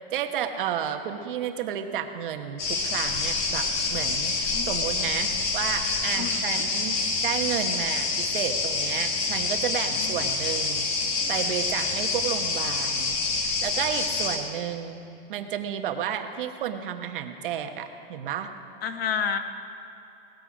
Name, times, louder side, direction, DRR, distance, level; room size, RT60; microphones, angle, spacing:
voice 1, 0.1-15.0 15.3-18.5, right 9 dB, 55° right, 6 dB, 1.2 m, -32 dB
sound 1, 2.6-14.4, left 3 dB, 35° left, 1.7 m, -27 dB
voice 2, 6.1-6.6 9.9-10.3 18.8-19.4, left 7 dB, 75° left, 8 dB, 1.3 m, -30 dB
18.5 x 14.0 x 5.1 m, 2.9 s
supercardioid pair, 170°, 30 cm